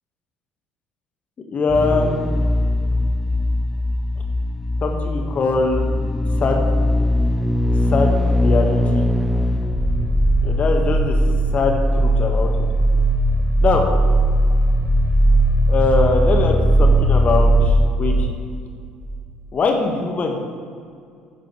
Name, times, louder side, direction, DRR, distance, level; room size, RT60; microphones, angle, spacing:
voice 1, 1.5-2.1 4.8-5.8 6.4-6.6 7.9-9.1 10.4-11.1 11.5-12.5 13.6-13.8 15.7-18.3 19.5-20.6, left 3 dB, 40° left, 2 dB, 1.9 m, -21 dB
sound 1, 1.7-19.2 19.5-19.6, equal, 5° left, 0.5 m, -19 dB
15.0 x 10.0 x 3.5 m, 2.3 s
figure-of-eight pair, 55°, 4 cm